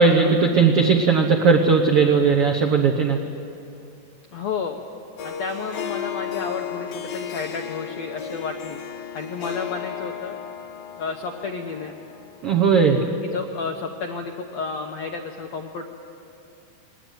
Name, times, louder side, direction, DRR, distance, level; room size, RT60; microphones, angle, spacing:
voice 1, 0.0-3.2 12.4-13.0, right 5 dB, 85° right, 2 dB, 1.3 m, -17 dB
voice 2, 4.3-4.8 5.2-8.8 9.1-10.3 11.0-12.0 13.2-15.8, left 5 dB, 80° left, 3 dB, 1.5 m, -31 dB
Harp, 5.2-12.7, left 8 dB, 60° left, 1.8 m, -34 dB
20.0 x 18.0 x 9.2 m, 2.6 s
omnidirectional pair, 4.3 m